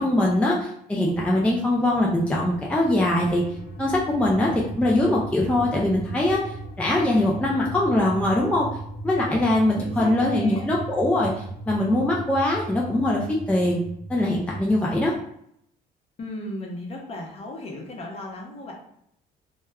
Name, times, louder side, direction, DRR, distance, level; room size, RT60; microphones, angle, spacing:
voice 1, 0.0-3.4 3.8-8.7 9.0-13.8 14.1-15.1, left 1 dB, 5° left, -3 dB, 0.4 m, -22 dB
sound 1, 1.9-15.1, right 2 dB, 70° left, 0.8 m, -37 dB
voice 2, 9.4-10.7 16.2-18.7, left 1 dB, 35° left, 0 dB, 0.8 m, -35 dB
2.2 x 2.0 x 3.4 m, 0.71 s
cardioid pair, 110°, 17 cm